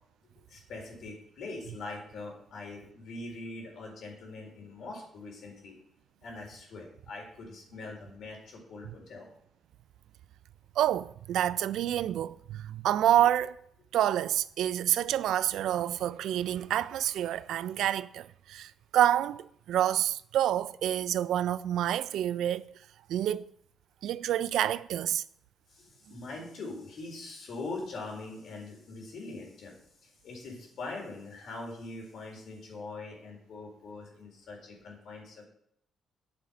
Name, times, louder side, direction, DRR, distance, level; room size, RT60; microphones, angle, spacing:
voice 1, 0.5-5.8 6.2-9.3 25.7-29.7 30.0-35.5, left 3 dB, 65° left, 4.0 m, -42 dB
voice 2, 10.8-13.6 13.9-22.7 23.1-23.5 24.0-25.2, right 11 dB, 80° right, 0.3 m, -28 dB
9.2 x 7.0 x 5.1 m
cardioid pair, 90°, 0 cm